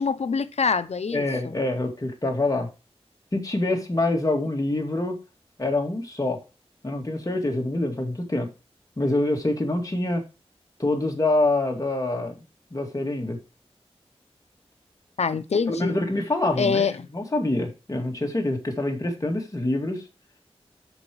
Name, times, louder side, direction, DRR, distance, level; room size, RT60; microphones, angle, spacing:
voice 1, 0.0-1.6 15.2-16.0 16.6-17.1, left 5 dB, 90° left, 0.7 m, -25 dB
voice 2, 1.1-2.7 3.3-5.2 5.6-6.4 6.8-8.5 9.0-10.2 10.8-12.4 12.7-13.4 15.7-16.9 17.1-20.0, left 2 dB, 30° left, 2.3 m, -25 dB
13.5 x 5.0 x 3.1 m
wide cardioid pair, 90°, 11 cm